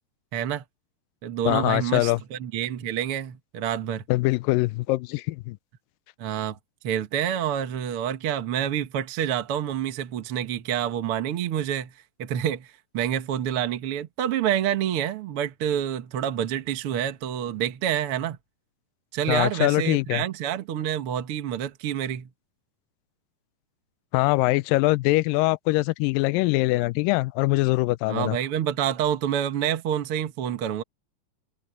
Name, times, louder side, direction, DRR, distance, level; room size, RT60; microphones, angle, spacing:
voice 1, 0.3-0.6 1.2-4.0 6.2-6.6 6.8-11.9 12.2-18.4 19.1-22.3 28.1-30.8, right 10 dB, 55° right, 1.6 m, -27 dB
voice 2, 1.5-2.2 4.1-5.6 19.3-20.2 24.1-28.4, left 21 dB, 85° left, 2.2 m, -23 dB
omnidirectional pair, 3.9 m